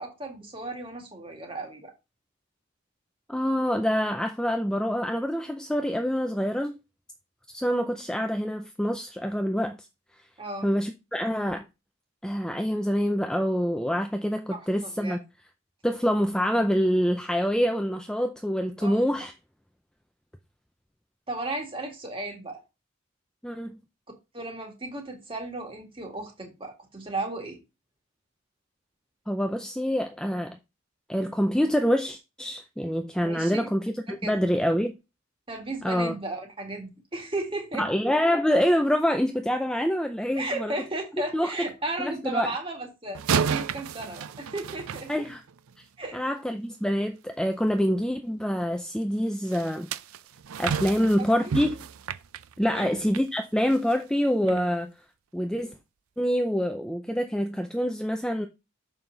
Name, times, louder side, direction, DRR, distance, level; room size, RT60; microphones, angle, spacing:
voice 1, 0.0-1.9 10.4-10.7 14.5-15.2 18.8-19.0 21.3-22.6 24.3-27.6 33.2-33.7 34.2-34.4 35.5-37.8 40.3-45.1 46.0-46.2 50.9-51.0 52.7-53.0, right 2 dB, 25° right, 2.0 m, -35 dB
voice 2, 3.3-6.8 7.5-9.8 10.6-11.7 12.2-15.2 15.8-19.3 23.4-23.8 29.3-30.6 31.1-34.9 35.8-36.1 37.8-40.7 41.3-41.5 42.0-42.5 45.1-45.4 46.1-49.9 50.6-51.8 52.6-54.9 55.3-55.7 56.2-58.5, equal, 5° left, 0.4 m, -26 dB
sound 1, 43.1-45.7 49.5-53.3 53.7-53.9 54.5-54.6, right 7 dB, 90° right, 0.5 m, -32 dB
6.8 x 5.5 x 3.9 m
head